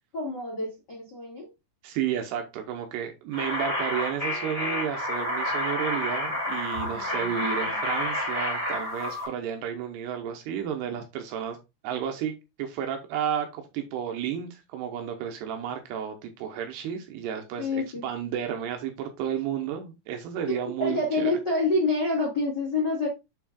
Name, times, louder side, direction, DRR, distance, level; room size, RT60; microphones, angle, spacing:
voice 1, 0.1-1.5 6.8-7.3 7.6-7.8 17.6-18.0 20.5-23.1, left 2 dB, 55° left, 1.1 m, -28 dB
voice 2, 1.8-11.6 11.8-21.3, right 9 dB, 85° right, 2.4 m, -32 dB
sound 1, 3.3-9.3, left 1 dB, 5° left, 1.6 m, -29 dB
7.5 x 6.0 x 2.3 m
omnidirectional pair, 5.9 m